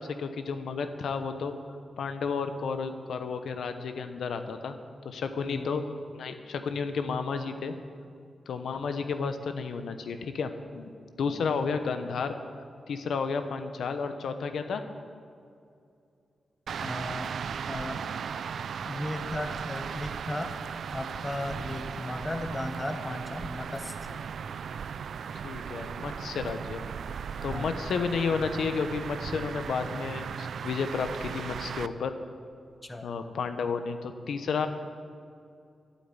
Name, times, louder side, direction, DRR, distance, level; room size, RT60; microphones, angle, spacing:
voice 1, 0.0-1.5 2.0-4.7 5.0-5.8 6.1-7.7 8.5-10.9 11.2-12.3 12.9-14.8 25.4-26.8 27.4-32.1 33.0-34.7, left 5 dB, 80° left, 8 dB, 0.9 m, -32 dB
sound 1, 16.7-31.9, right 7 dB, 70° right, 0.4 m, -37 dB
voice 2, 16.8-17.3 17.7-18.0 18.9-20.6 20.9-24.2 27.5-27.7 32.8-33.1, left 1 dB, 15° left, 6 dB, 0.9 m, -36 dB
12.0 x 8.5 x 9.1 m, 2.5 s
wide cardioid pair, 160°, 0 cm